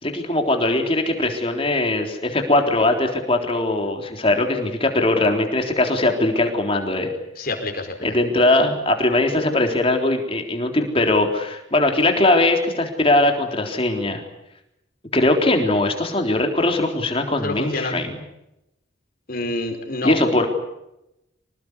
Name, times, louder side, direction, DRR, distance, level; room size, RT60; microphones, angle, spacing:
voice 1, 0.0-7.1 8.0-14.2 15.1-18.1 20.0-20.5, left 2 dB, 30° left, 3 dB, 3.7 m, -20 dB
voice 2, 7.4-8.1 17.4-17.9 19.3-20.2, left 2 dB, 45° left, 5 dB, 4.9 m, -27 dB
26.0 x 18.5 x 9.8 m, 0.87 s
head